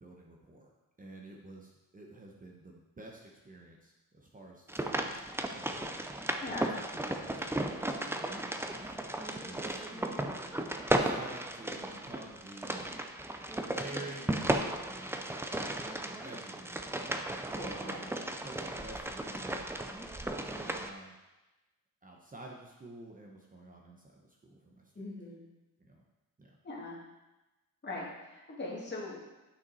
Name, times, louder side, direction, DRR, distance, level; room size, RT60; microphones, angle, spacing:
voice 1, 0.0-0.7 1.0-6.0 6.5-6.7 7.0-7.6 8.7-9.2 9.4-9.9 10.9-13.0 13.7-14.4 16.2-16.7 17.6-19.7 20.0-21.1 22.0-25.0 25.8-26.0 26.4-26.6, right 2 dB, 25° right, -1 dB, 0.8 m, -50 dB
sound 1, 4.7-20.9, right 1 dB, 5° right, 0.4 m, -35 dB
voice 2, 9.9-10.3 17.5-18.1 25.0-25.4 26.6-27.0 27.8-29.4, left 2 dB, 30° left, -4 dB, 2.1 m, -41 dB
9.8 x 5.9 x 4.0 m, 1.0 s
wide cardioid pair, 165°, 34 cm